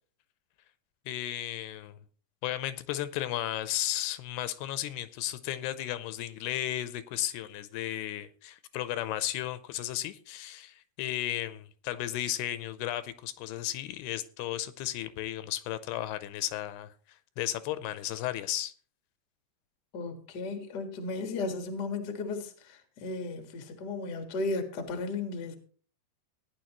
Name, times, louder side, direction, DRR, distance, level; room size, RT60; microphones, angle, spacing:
voice 1, 1.1-2.0 2.4-16.9 17.4-18.7, left 13 dB, 80° left, 2.6 m, -34 dB
voice 2, 19.9-25.5, left 3 dB, 65° left, 1.0 m, -35 dB
16.5 x 9.9 x 3.0 m
omnidirectional pair, 4.7 m